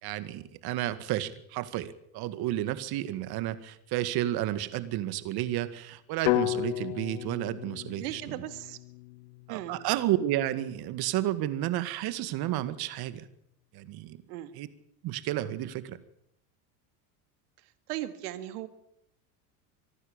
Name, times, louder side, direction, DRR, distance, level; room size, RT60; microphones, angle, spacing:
voice 1, 0.0-8.4 9.5-13.3 13.7-14.2 14.6-14.7 15.0-16.0, right 13 dB, 55° right, 12 dB, 2.0 m, -31 dB
sound 1, 6.3-10.3, left 19 dB, 80° left, 0.8 m, -33 dB
voice 2, 8.0-8.8 9.5-9.8 14.3-14.5 17.9-18.7, right 14 dB, 80° right, 11 dB, 2.1 m, -37 dB
25.5 x 12.0 x 8.8 m, 0.75 s
supercardioid pair, 110°, 45 cm